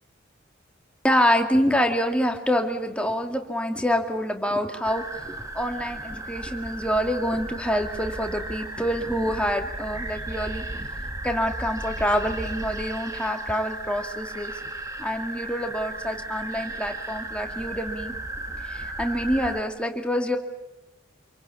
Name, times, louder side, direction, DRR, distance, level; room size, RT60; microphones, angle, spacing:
voice 1, 1.0-10.6 11.2-14.5 15.0-18.1 18.6-20.4, equal, 5° left, 4 dB, 2.3 m, -26 dB
sound 1, 4.8-19.6, right 2 dB, 15° right, 2.2 m, -35 dB
27.0 x 23.5 x 8.5 m, 1.0 s
head